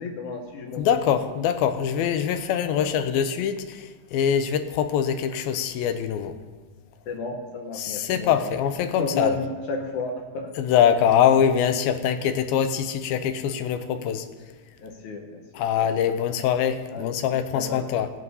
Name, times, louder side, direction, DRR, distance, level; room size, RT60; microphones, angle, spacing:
voice 1, 0.0-1.0 2.8-2.9 7.1-8.3 9.0-10.5 14.8-15.4 15.8-15.9 16.9-17.2 17.5-17.8, left 3 dB, 70° left, 2 dB, 2.0 m, -32 dB
voice 2, 0.8-6.4 7.7-9.4 10.6-14.3 15.5-18.1, left 8 dB, 90° left, 9 dB, 2.5 m, -23 dB
16.5 x 9.3 x 4.1 m, 1.4 s
omnidirectional pair, 4.2 m